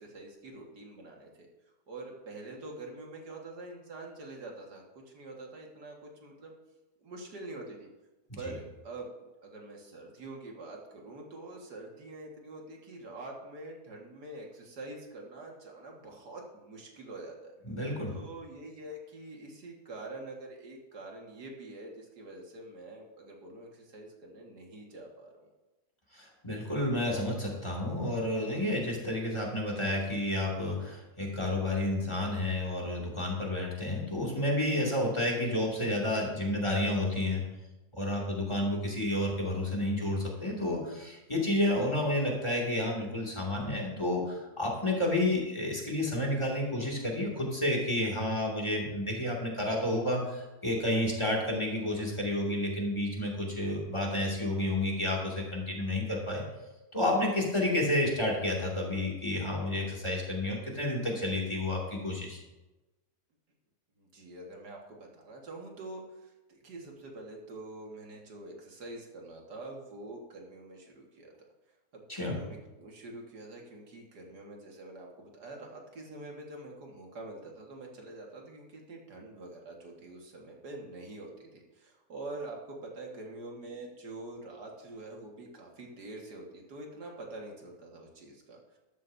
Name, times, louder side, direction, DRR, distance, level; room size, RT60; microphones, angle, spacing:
voice 1, 0.0-1.5 1.9-6.5 7.0-7.9 8.4-17.5 18.1-25.5 64.0-71.3 71.9-88.8, right 2 dB, 80° right, 0 dB, 2.4 m, -45 dB
voice 2, 17.6-18.1 26.1-37.4 37.9-56.4 56.9-62.4 72.1-72.4, left 1 dB, 15° left, -1 dB, 2.4 m, -30 dB
13.0 x 12.5 x 2.7 m, 1.1 s
omnidirectional pair, 1.7 m